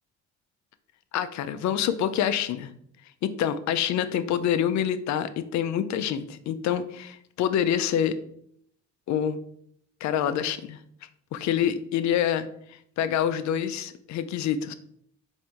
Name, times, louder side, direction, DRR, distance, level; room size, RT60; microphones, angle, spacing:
voice 1, 1.1-2.7 3.2-8.2 9.1-9.4 10.0-10.8 11.3-14.7, left 9 dB, 70° left, 12 dB, 0.4 m, -26 dB
4.2 x 2.6 x 3.5 m, 0.68 s
cardioid pair, 90°, 30 cm